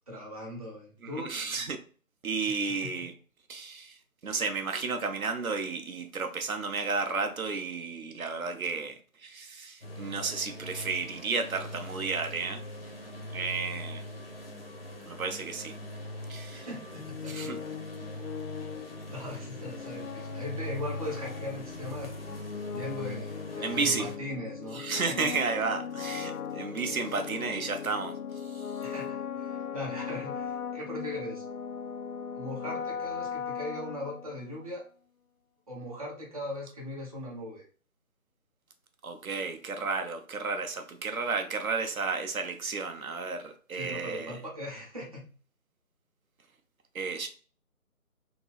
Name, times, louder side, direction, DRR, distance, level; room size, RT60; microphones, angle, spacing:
voice 1, 0.1-1.3 2.4-2.5 2.8-2.9 16.5-17.3 18.6-18.8 19.1-22.1 22.7-25.3 28.8-31.4 32.3-34.8 35.7-37.6 43.7-45.2, left 1 dB, 25° right, 0.7 m, -39 dB
voice 2, 1.0-1.8 2.2-3.1 3.5-4.0 4.2-12.6 13.3-14.0 15.1-15.7 16.3-16.7 17.3-17.6 23.6-24.1 24.7-28.2 28.4-28.8 39.0-44.4 46.9-47.3, right 4 dB, 70° right, 0.6 m, -32 dB
sound 1, 9.8-24.2, left 1 dB, 45° left, 0.5 m, -41 dB
sound 2, 16.9-34.6, left 7 dB, 90° left, 0.6 m, -38 dB
2.9 x 2.7 x 3.1 m
figure-of-eight pair, 155°, 43 cm